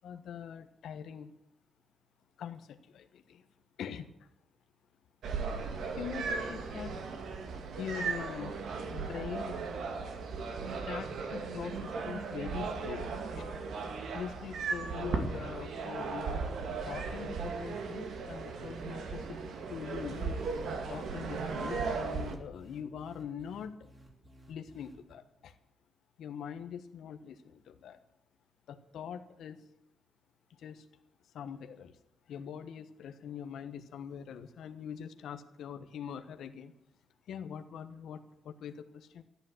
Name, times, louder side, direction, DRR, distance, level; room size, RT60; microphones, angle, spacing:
voice 1, 0.0-1.3 2.4-3.5 3.8-4.3 5.7-7.0 7.8-8.6 8.8-9.6 10.6-13.5 14.1-16.5 16.8-19.4 19.7-20.4 20.9-23.9 24.5-25.5 26.2-28.0 28.7-29.6 30.5-30.9 31.3-32.0 32.3-36.7 37.3-39.2, left 8 dB, 85° left, 7 dB, 1.2 m, -43 dB
sound 1, 5.2-22.4, right 4 dB, 75° right, 2.3 m, -37 dB
sound 2, 20.0-25.1, right 1 dB, 20° right, 3.5 m, -57 dB
14.0 x 10.5 x 7.9 m, 0.84 s
wide cardioid pair, 155°, 0 cm